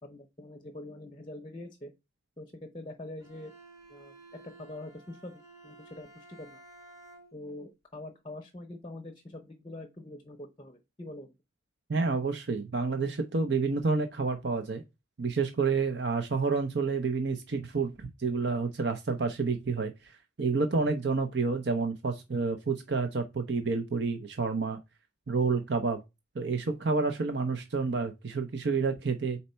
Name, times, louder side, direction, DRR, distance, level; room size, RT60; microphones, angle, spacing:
voice 1, 0.0-1.9 2.4-3.5 3.9-4.1 4.6-6.6 7.3-11.4, left 1 dB, 25° left, 0.6 m, -44 dB
Bowed string instrument, 3.2-7.6, right 2 dB, 15° right, 1.1 m, -54 dB
voice 2, 11.9-14.8 15.2-24.8 25.3-26.0 26.4-29.4, right 4 dB, 60° right, 0.6 m, -29 dB
4.3 x 4.1 x 5.5 m
head